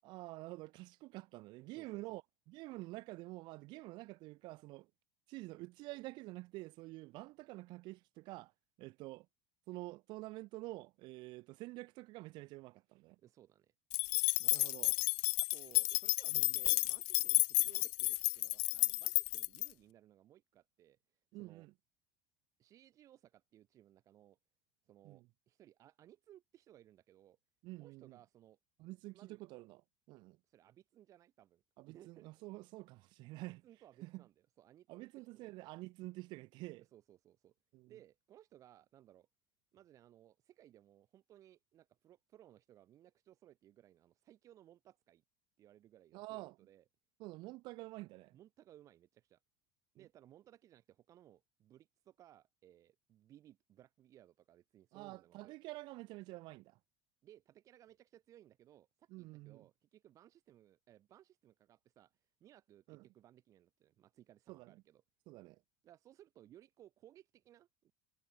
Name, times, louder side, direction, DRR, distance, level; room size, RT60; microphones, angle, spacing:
voice 1, 0.0-2.2 2.5-4.9 5.3-8.5 8.8-9.3 9.7-13.2 14.4-15.0 16.3-16.5 21.3-21.7 25.0-25.3 27.6-28.2 28.8-29.8 30.1-30.4 31.8-33.6 34.0-34.2 34.9-36.9 37.7-37.9 46.1-46.5 47.2-48.4 50.0-50.1 54.9-56.8 59.1-59.6 62.9-63.1 64.5-64.8 65.3-65.6, right 21 dB, 45° right, 7.0 m, -48 dB
voice 2, 1.7-2.2 13.2-13.7 15.5-21.7 22.6-24.4 24.9-27.4 27.8-28.6 29.1-29.4 30.4-32.3 33.4-35.7 36.8-37.5 37.9-39.3 39.7-45.2 45.6-46.8 48.3-49.4 49.9-55.6 57.2-65.0 65.8-67.9, right 12 dB, 30° right, 4.5 m, -62 dB
sound 1, 13.9-19.7, left 40 dB or more, 55° left, 0.7 m, -32 dB
cardioid pair, 165°, 10 cm